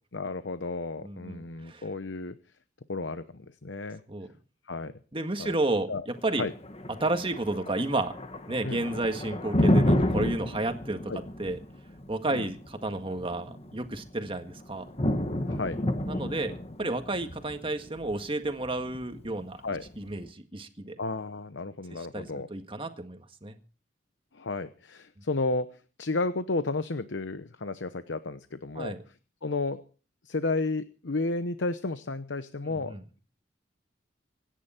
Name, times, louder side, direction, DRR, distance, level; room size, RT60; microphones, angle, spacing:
voice 1, 0.1-2.4 2.9-4.0 4.6-4.9 5.4-5.5 5.9-6.1 6.4-6.5 8.6-8.8 11.1-11.2 12.3-12.5 15.5-15.8 19.6-19.9 21.0-22.5 24.3-29.1 29.4-29.8 30.2-33.2, left 3 dB, 80° left, 12 dB, 0.9 m, -32 dB
voice 2, 1.0-1.4 1.7-1.8 4.1-4.3 5.1-6.5 7.0-8.1 8.5-11.1 11.4-11.6 12.1-14.9 16.1-19.6 20.0-21.0 22.1-23.6 28.8-29.0 32.9-33.0, right 2 dB, 30° right, 7 dB, 1.8 m, -31 dB
Thunder, 6.2-20.2, left 1 dB, 35° left, 1.4 m, -31 dB
26.0 x 10.0 x 4.4 m, 0.39 s
head